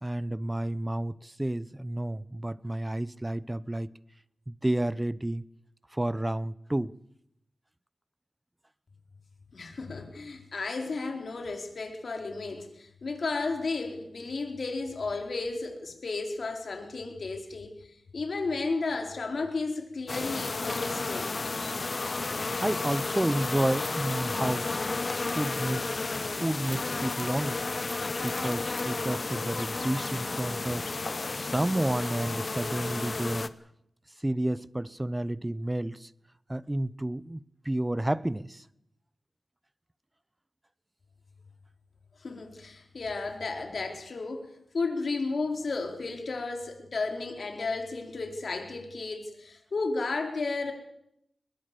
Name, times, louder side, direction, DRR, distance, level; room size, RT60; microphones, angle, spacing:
voice 1, 0.0-3.9 4.5-5.4 5.9-7.0 22.2-24.8 25.1-25.9 26.2-28.0 28.2-33.5 34.2-36.1 36.5-38.6, right 1 dB, 15° right, 0.8 m, -31 dB
voice 2, 9.5-21.3 42.2-50.7, left 3 dB, 65° left, 4.3 m, -33 dB
sound 1, 20.1-33.5, left 3 dB, 45° left, 1.1 m, -32 dB
22.5 x 21.5 x 7.0 m
cardioid pair, 55°, 0 cm